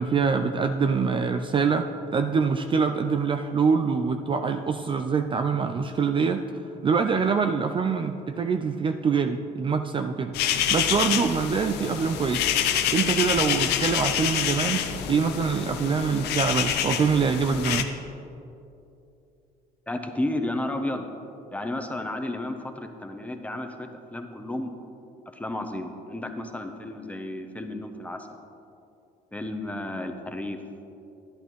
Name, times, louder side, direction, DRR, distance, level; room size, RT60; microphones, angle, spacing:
voice 1, 0.0-10.4 10.7-12.5 12.9-17.9, right 5 dB, 30° right, 7 dB, 0.4 m, -25 dB
sound 1, 10.3-17.8, left 9 dB, 80° left, 0.6 m, -27 dB
voice 2, 19.9-21.0 21.5-24.7 25.3-28.3 29.3-30.6, left 1 dB, 10° left, 5 dB, 0.7 m, -32 dB
11.5 x 10.0 x 3.1 m, 2.8 s
cardioid pair, 110°, 17 cm